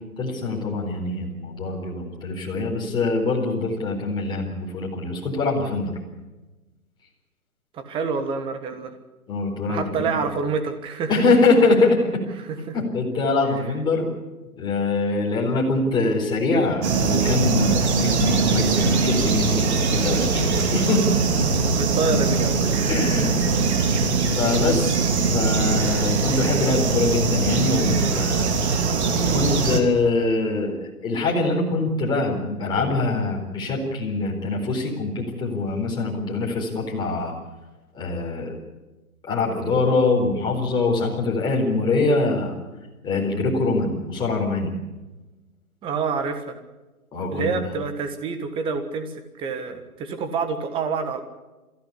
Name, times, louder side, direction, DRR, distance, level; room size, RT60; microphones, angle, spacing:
voice 1, 0.2-5.9 9.3-10.1 11.1-12.2 12.7-14.1 14.6-21.0 22.1-22.2 22.9-28.5 29.2-37.3 37.9-38.6 39.3-42.5 43.0-44.7 47.1-47.5, left 3 dB, 10° left, -2 dB, 4.2 m, -24 dB
voice 2, 7.7-8.9 9.7-11.1 12.7-12.8 13.5-13.6 21.7-23.2 23.9-24.1 45.8-46.6 47.3-51.2, right 5 dB, 10° right, 8 dB, 1.5 m, -27 dB
sound 1, 16.8-29.8, right 4 dB, 45° right, 2.9 m, -21 dB
23.0 x 15.5 x 8.3 m, 1.1 s
hypercardioid pair, 150°, 44 cm